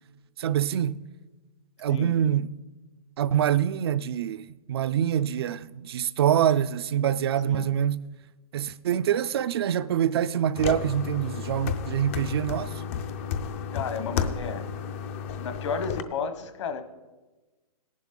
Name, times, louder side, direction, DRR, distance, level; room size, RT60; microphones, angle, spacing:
voice 1, 0.4-1.0 1.8-2.5 3.2-8.0 8.5-12.7, right 10 dB, 40° right, 0.4 m, -25 dB
sound 1, 10.6-16.0, left 7 dB, 20° left, 0.5 m, -32 dB
voice 2, 13.7-14.7 15.4-16.8, left 5 dB, 50° left, 1.2 m, -32 dB
17.0 x 11.0 x 3.9 m
hypercardioid pair, 160°, 19 cm